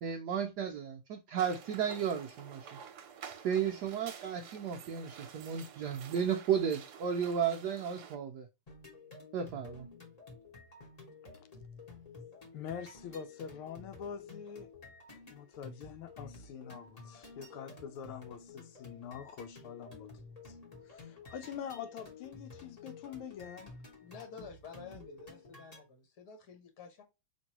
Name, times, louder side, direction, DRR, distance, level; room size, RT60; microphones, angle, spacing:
voice 1, 0.0-2.7 3.4-8.5 9.3-9.9, right 7 dB, 80° right, 0.9 m, -34 dB
sound 1, 1.4-8.2, right 7 dB, 60° right, 1.1 m, -50 dB
sound 2, 8.7-25.8, left 3 dB, 25° left, 0.9 m, -52 dB
voice 2, 12.5-14.7 15.3-20.1 20.4-20.5 20.8-23.7 24.4-24.5, left 8 dB, 80° left, 1.4 m, -45 dB
voice 3, 24.0-27.0, left 5 dB, 50° left, 1.3 m, -50 dB
5.2 x 3.1 x 2.9 m
omnidirectional pair, 2.4 m